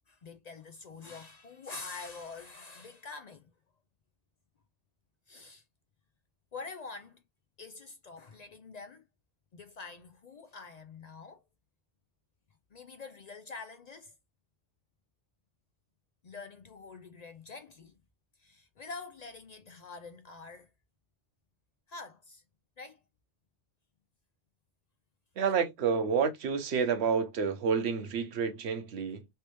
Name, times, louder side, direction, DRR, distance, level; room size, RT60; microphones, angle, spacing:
voice 1, 0.1-3.5 5.3-5.6 6.5-7.2 7.6-9.0 9.5-11.4 12.7-14.1 16.2-17.9 18.4-20.7 21.9-22.4 22.8-23.0, left 4 dB, 60° left, 0.4 m, -46 dB
voice 2, 25.4-29.3, right 6 dB, 65° right, 1.0 m, -29 dB
3.3 x 2.9 x 3.0 m
omnidirectional pair, 1.2 m